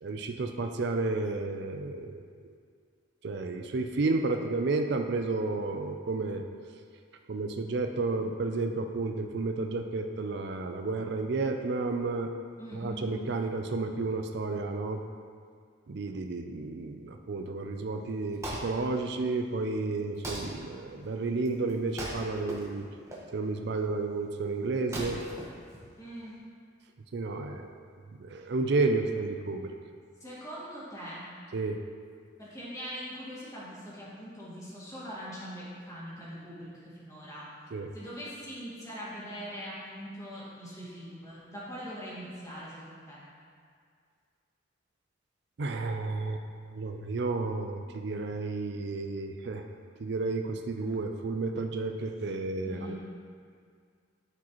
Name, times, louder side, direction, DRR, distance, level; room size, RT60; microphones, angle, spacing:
voice 1, 0.0-2.2 3.2-6.4 7.3-12.3 12.7-15.0 15.9-22.9 23.3-25.2 27.1-27.7 28.2-29.7 31.5-31.8 37.7-37.9 45.6-46.4 46.7-49.6 50.0-52.9, right 3 dB, 55° right, 5 dB, 0.4 m, -31 dB
voice 2, 12.6-13.1 25.9-26.3 30.2-31.3 32.4-37.5 37.9-43.2 52.6-52.9, equal, 15° left, -8 dB, 1.9 m, -42 dB
Wood, 18.0-26.4, right 1 dB, 15° right, 1.2 m, -42 dB
13.0 x 4.8 x 3.1 m, 2.1 s
head